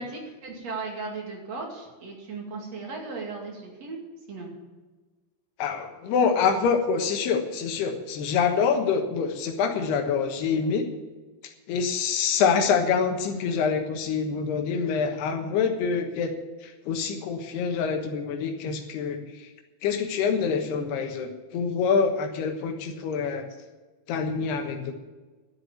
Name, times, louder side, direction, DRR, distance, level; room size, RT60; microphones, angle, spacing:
voice 1, 0.0-4.0 4.3-4.5, right 3 dB, 45° right, 0 dB, 3.2 m, -36 dB
voice 2, 5.6-10.9 11.7-16.3 16.6-19.5 19.8-23.5 24.1-24.9, left 6 dB, 85° left, 5 dB, 3.4 m, -26 dB
12.0 x 8.4 x 8.5 m, 1.2 s
omnidirectional pair, 4.5 m